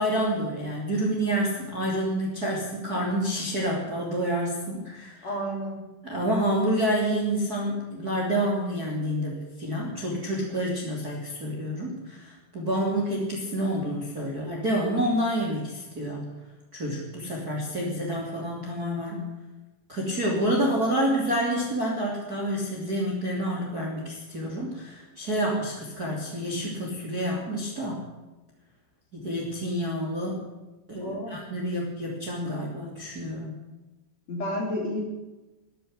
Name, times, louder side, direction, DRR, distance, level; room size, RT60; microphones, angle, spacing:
voice 1, 0.0-5.3 6.0-16.3 16.7-19.2 19.9-28.0 29.1-30.4 30.9-33.5, equal, 25° right, -2 dB, 2.8 m, -28 dB
voice 2, 5.2-5.8 31.0-31.3 34.3-35.0, equal, 40° left, -2 dB, 4.7 m, -30 dB
13.0 x 10.5 x 9.6 m, 1.1 s
omnidirectional pair, 5.0 m